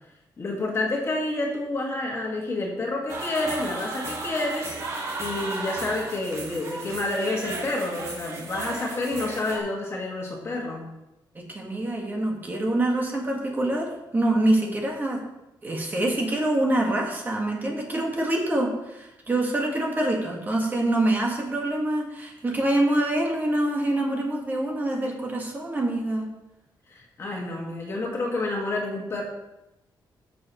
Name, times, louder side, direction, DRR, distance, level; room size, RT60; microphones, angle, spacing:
voice 1, 0.4-4.8 5.2-10.9 26.9-29.2, left 2 dB, 35° left, -1 dB, 1.7 m, -29 dB
sound 1, 3.1-9.6, right 2 dB, 40° right, 1.8 m, -35 dB
voice 2, 11.3-15.2 15.6-26.3, right 1 dB, 25° right, -1 dB, 1.5 m, -25 dB
12.0 x 6.9 x 3.0 m, 0.94 s
wide cardioid pair, 160°, 8 cm